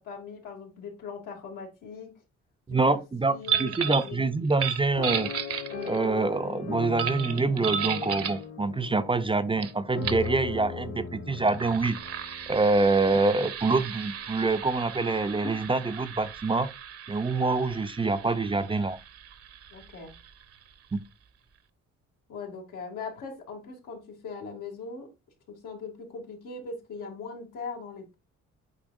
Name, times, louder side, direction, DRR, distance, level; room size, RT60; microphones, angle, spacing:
voice 1, 0.0-2.2 2.7-3.0 3.2-4.3 19.7-20.2 22.3-25.1 25.5-28.1, left 5 dB, 90° left, 2.3 m, -40 dB
voice 2, 2.7-3.3 3.6-5.3 5.8-12.0 12.5-16.7 17.1-19.0 20.9-21.0, right 3 dB, 20° right, 0.5 m, -26 dB
sound 1, 3.4-4.1 4.5-6.0 7.0-8.4 9.6-9.7 10.0-10.3 11.3-20.6, right 8 dB, 50° right, 0.8 m, -35 dB
sound 2, 5.0-13.1 13.7-13.8 14.0-14.3, left 6 dB, 55° left, 1.3 m, -38 dB
8.9 x 4.2 x 2.5 m
cardioid pair, 90°, 30 cm